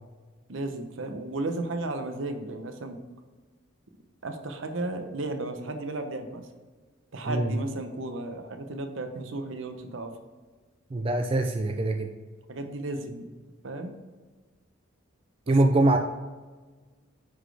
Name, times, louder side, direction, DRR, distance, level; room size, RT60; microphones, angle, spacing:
voice 1, 0.5-3.0 4.2-6.4 7.1-10.1 12.5-13.2 13.6-13.9 15.5-15.6, right 2 dB, 70° right, 6 dB, 0.8 m, -34 dB
voice 2, 10.9-12.1 15.5-16.0, right 2 dB, 25° right, 4 dB, 0.4 m, -23 dB
9.5 x 4.1 x 3.4 m, 1.3 s
head